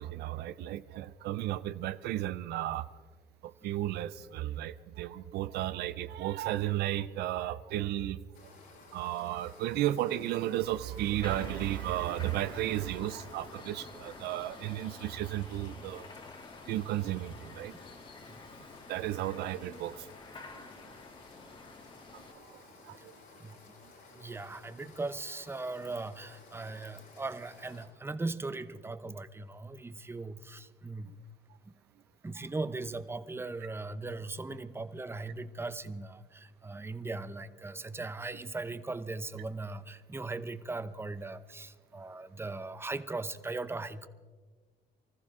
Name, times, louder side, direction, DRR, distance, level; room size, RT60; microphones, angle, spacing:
voice 1, 0.0-2.9 3.4-8.2 8.9-16.1 16.7-17.7 18.9-20.1 20.8-20.9 22.1-23.1, right 13 dB, 75° right, 14 dB, 0.6 m, -34 dB
sound 1, 8.3-27.9, left 4 dB, 85° left, 5.5 m, -55 dB
sound 2, 11.2-22.3, left 3 dB, 30° left, 1.6 m, -50 dB
voice 2, 24.1-31.1 31.7-31.8 32.2-44.1, right 3 dB, 15° right, 13 dB, 0.8 m, -39 dB
25.0 x 14.5 x 3.7 m, 1.5 s
cardioid pair, 110°, 17 cm